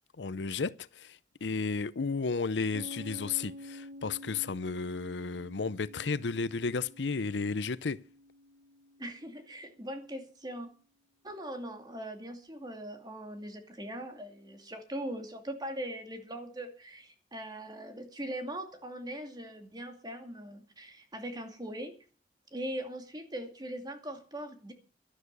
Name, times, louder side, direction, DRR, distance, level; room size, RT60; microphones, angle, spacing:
voice 1, 0.2-8.0, left 4 dB, 85° left, 0.6 m, -33 dB
Piano, 2.7-9.9, left 1 dB, 75° right, 1.4 m, -49 dB
voice 2, 9.0-10.7 11.2-21.9 22.5-24.7, right 1 dB, 25° right, 2.5 m, -41 dB
12.0 x 11.0 x 6.8 m
head